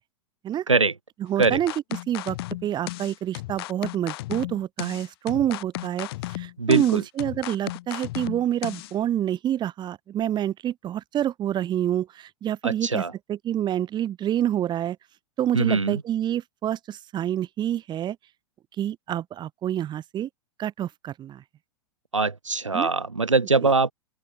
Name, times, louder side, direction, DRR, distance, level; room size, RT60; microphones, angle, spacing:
voice 1, 1.3-1.7 2.1-2.4 2.6-6.1 6.4-13.0 13.3-15.0 15.4-18.2 18.8-20.3 20.6-21.4 22.7-22.9, right 11 dB, 30° right, 4.6 m, -27 dB
sound 1, 1.4-8.9, left 19 dB, 50° left, 3.7 m, -35 dB
voice 2, 6.6-7.0 12.6-13.1 15.5-16.0 22.1-23.9, right 3 dB, 85° right, 2.4 m, -22 dB
open air
figure-of-eight pair, 95°, 16 cm